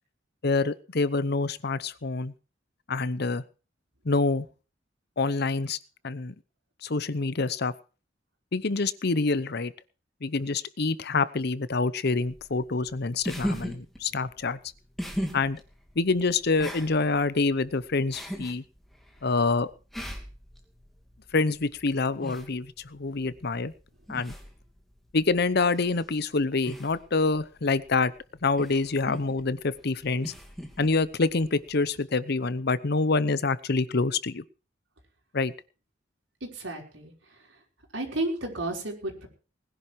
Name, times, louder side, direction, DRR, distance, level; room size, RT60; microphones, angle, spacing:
voice 1, 0.4-2.3 2.9-3.4 4.0-4.5 5.2-5.8 6.0-6.3 6.8-7.7 8.5-9.7 10.2-14.6 15.3-15.6 16.0-18.6 19.2-19.7 21.3-23.7 24.1-24.3 25.1-28.1 28.4-30.3 30.8-34.4 35.3-35.5, left 3 dB, 60° left, 16 dB, 0.8 m, -26 dB
sound 1, 12.2-31.9, equal, ahead, 2.7 m, -40 dB
voice 2, 36.4-37.1 37.9-39.3, right 2 dB, 75° right, 0 dB, 5.4 m, -32 dB
20.0 x 10.5 x 4.7 m, 0.37 s
head